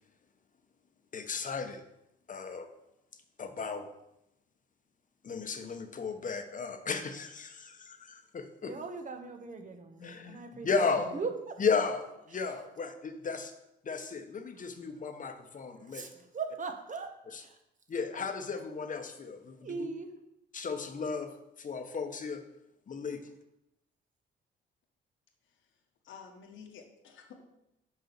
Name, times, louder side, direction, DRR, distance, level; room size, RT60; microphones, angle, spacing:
voice 1, 1.1-1.8 2.3-2.7 3.4-3.9 5.2-8.7 10.0-11.2 11.6-13.5 13.8-16.0 17.3-17.4 17.9-19.9 20.5-22.4 22.9-23.2, left 5 dB, 40° left, 7 dB, 1.1 m, -34 dB
voice 2, 8.6-11.6 15.8-17.6 18.1-18.3 19.5-20.1, right 4 dB, 40° right, 6 dB, 1.4 m, -40 dB
voice 3, 25.4-27.4, left 6 dB, 75° left, 2 dB, 1.6 m, -52 dB
6.5 x 5.5 x 7.1 m, 0.85 s
cardioid pair, 90°, 20 cm